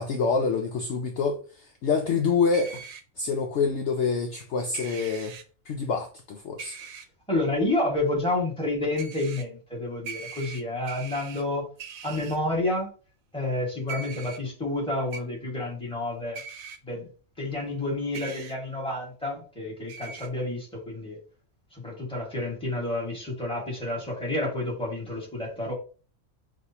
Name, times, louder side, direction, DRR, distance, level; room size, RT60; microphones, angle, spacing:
voice 1, 0.0-2.8 3.2-5.3 5.7-6.8, left 5 dB, 65° left, 0.8 m, -26 dB
sound 1, 2.5-3.0 4.7-5.4 6.6-7.1 9.0-9.4 10.1-11.4 11.8-12.4 13.9-14.4 15.1-15.2 16.4-16.8 18.1-18.6 19.9-20.3, right 5 dB, 80° right, 1.0 m, -41 dB
voice 2, 7.3-11.7 12.0-12.9 13.3-16.4 16.8-17.1 17.4-21.2 21.7-25.7, left 2 dB, 5° left, 1.5 m, -29 dB
6.2 x 2.5 x 2.7 m
omnidirectional pair, 1.5 m